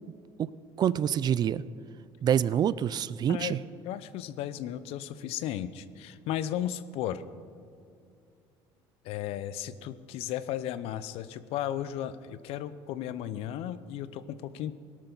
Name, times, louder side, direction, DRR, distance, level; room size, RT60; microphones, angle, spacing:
voice 1, 0.8-1.6 2.2-3.6, right 9 dB, 40° right, 18 dB, 0.4 m, -26 dB
voice 2, 3.8-7.2 9.0-14.7, left 11 dB, 75° left, 14 dB, 0.7 m, -35 dB
17.5 x 12.5 x 4.0 m, 2.4 s
cardioid pair, 105°, 10 cm